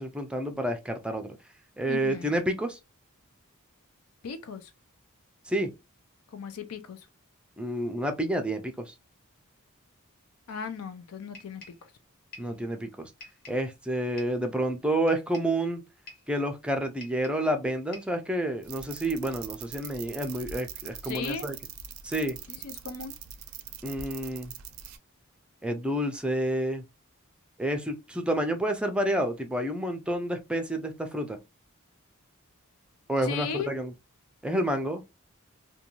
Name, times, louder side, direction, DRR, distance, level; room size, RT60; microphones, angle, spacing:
voice 1, 0.0-1.4 1.8-2.8 5.5-5.7 7.6-8.9 12.4-13.1 13.5-15.8 16.3-21.6 22.0-22.4 23.8-24.5 25.6-26.8 27.6-31.4 33.1-33.9 34.4-35.0, right 1 dB, 5° right, 0.3 m, -29 dB
voice 2, 1.9-2.4 4.2-4.7 6.3-7.1 10.5-11.9 21.0-21.5 22.5-23.2 33.2-33.7, left 6 dB, 90° left, 0.5 m, -37 dB
sound 1, 11.3-11.9 12.3-12.6 13.2-13.7 14.2-14.5 15.1-15.6 16.1-16.3 17.0-17.5 17.9-18.2, left 2 dB, 45° left, 1.0 m, -48 dB
sound 2, 18.6-25.0, right 8 dB, 80° right, 0.4 m, -42 dB
2.5 x 2.3 x 2.9 m
head